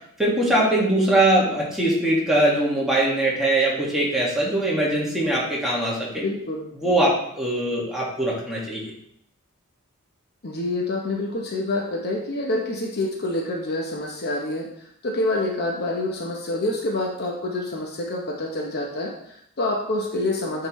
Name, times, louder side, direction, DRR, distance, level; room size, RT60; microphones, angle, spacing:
voice 1, 0.2-6.2 6.8-8.8, right 1 dB, ahead, -6 dB, 1.8 m, -22 dB
voice 2, 6.2-6.7 10.4-20.7, left 2 dB, 50° left, 0 dB, 0.8 m, -27 dB
8.8 x 3.8 x 3.1 m, 0.72 s
head